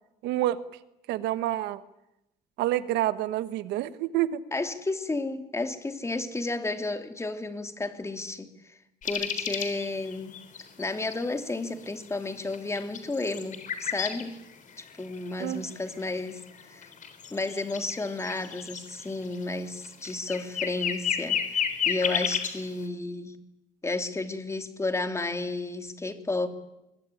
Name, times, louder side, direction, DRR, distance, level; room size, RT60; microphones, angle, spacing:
voice 1, 0.2-0.6 1.1-1.8 2.6-4.4 15.4-15.6, right 14 dB, 90° right, 14 dB, 1.3 m, -28 dB
voice 2, 4.5-8.8 9.0-10.4 10.8-14.4 14.8-16.9 17.3-23.4 23.8-26.5, left 2 dB, 15° left, 8 dB, 2.9 m, -32 dB
sound 1, 9.0-11.2 11.8-11.9 12.3-14.2 14.6-22.5, left 8 dB, 50° left, 4.1 m, -32 dB
24.5 x 22.0 x 9.9 m, 0.91 s
cardioid pair, 110°, 17 cm